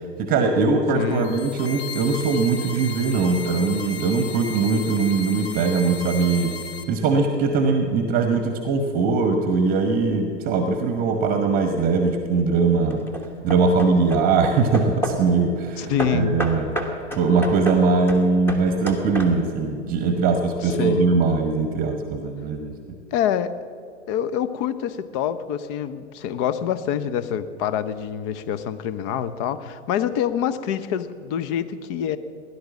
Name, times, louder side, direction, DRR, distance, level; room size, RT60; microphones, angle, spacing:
voice 1, 0.2-6.5 6.9-13.0 13.4-16.7 17.2-22.7, right 4 dB, 25° right, 7 dB, 1.1 m, -21 dB
voice 2, 0.9-1.4 15.8-16.4 20.6-21.1 23.1-23.6 24.1-32.2, left 9 dB, 25° left, 13 dB, 0.6 m, -26 dB
sound 1, 1.1-6.8, left 6 dB, 60° left, 1.7 m, -35 dB
Hammer / Wood, 11.8-12.3 12.9-15.3 16.0-19.6, equal, 5° left, 1.3 m, -31 dB
16.5 x 11.0 x 7.4 m, 2.3 s
figure-of-eight pair, 105°, 37 cm